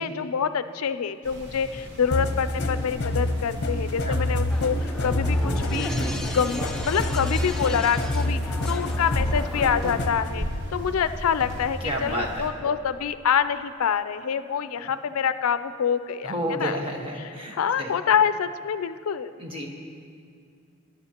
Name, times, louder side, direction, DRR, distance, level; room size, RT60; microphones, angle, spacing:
voice 1, 0.0-5.9 6.3-10.5 10.7-16.8 17.2-19.3, left 7 dB, 85° left, 12 dB, 0.4 m, -26 dB
sound 1, 1.2-12.5, equal, 50° right, 1.1 m, -35 dB
sound 2, 2.1-10.3, left 1 dB, 50° left, 0.9 m, -27 dB
sound 3, 4.5-10.0, left 1 dB, 5° left, 0.6 m, -36 dB
voice 2, 11.6-12.5 14.8-14.9 16.2-17.9 19.4-19.7, right 1 dB, 25° right, -1 dB, 1.4 m, -31 dB
22.5 x 11.0 x 2.9 m, 2.3 s
head